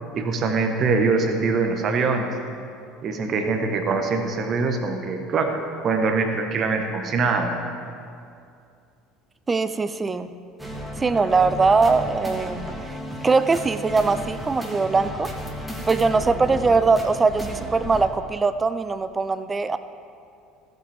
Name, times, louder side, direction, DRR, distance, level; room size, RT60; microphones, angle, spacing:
voice 1, 0.1-2.3 3.0-7.5, right 4 dB, 45° right, 5 dB, 1.3 m, -23 dB
voice 2, 9.5-10.3 11.0-13.0 13.2-15.3 15.9-19.8, right 4 dB, 25° right, 12 dB, 0.5 m, -21 dB
sound 1, 10.6-18.0, equal, 5° right, 2.0 m, -33 dB
15.5 x 8.1 x 3.6 m, 2.4 s
hypercardioid pair, 65°, 0 cm